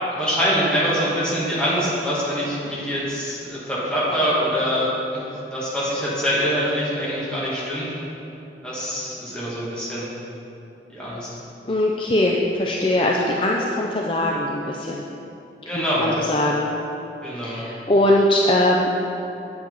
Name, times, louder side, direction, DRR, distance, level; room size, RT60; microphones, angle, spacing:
voice 1, 0.1-7.9 8.6-10.1 10.9-11.3 15.7-16.2 17.2-17.6, equal, 5° left, -9 dB, 2.0 m, -24 dB
voice 2, 11.7-15.0 15.7-16.7 17.4-18.9, left 1 dB, 30° left, -2 dB, 0.5 m, -21 dB
8.9 x 8.3 x 4.0 m, 2.9 s
head